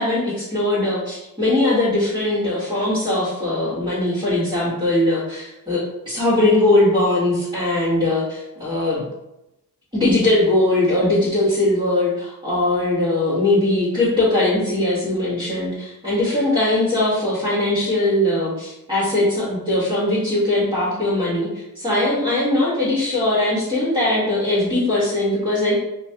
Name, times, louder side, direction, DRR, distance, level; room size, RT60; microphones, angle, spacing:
voice 1, 0.0-9.0 9.9-25.7, left 1 dB, 15° right, -11 dB, 1.4 m, -20 dB
3.1 x 2.2 x 2.8 m, 0.91 s
cardioid pair, 60°, 36 cm